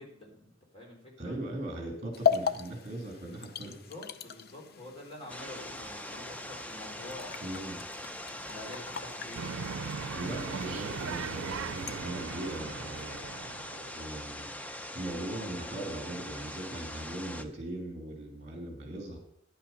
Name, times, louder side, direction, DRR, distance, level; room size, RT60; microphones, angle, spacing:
voice 1, 0.0-1.4 3.6-7.5 8.4-9.8, left 1 dB, 30° left, -1 dB, 3.3 m, -47 dB
voice 2, 1.2-3.8 7.4-7.8 10.1-13.2 13.9-19.2, right 1 dB, 35° right, 2 dB, 3.0 m, -39 dB
sound 1, 2.1-12.0, left 7 dB, 50° left, 0.6 m, -37 dB
sound 2, 5.3-17.4, left 1 dB, 5° left, 0.5 m, -42 dB
sound 3, 9.3-14.2, right 6 dB, 90° right, 0.5 m, -39 dB
10.5 x 8.6 x 5.5 m, 0.74 s
head